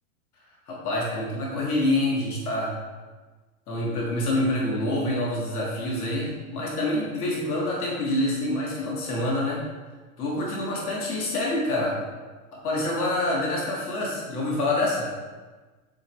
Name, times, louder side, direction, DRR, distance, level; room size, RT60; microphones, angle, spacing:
voice 1, 0.7-2.8 3.7-9.6 10.2-12.0 12.5-15.1, left 1 dB, 80° left, -4 dB, 1.8 m, -26 dB
7.4 x 5.7 x 3.1 m, 1.3 s
hypercardioid pair, 100°, 44 cm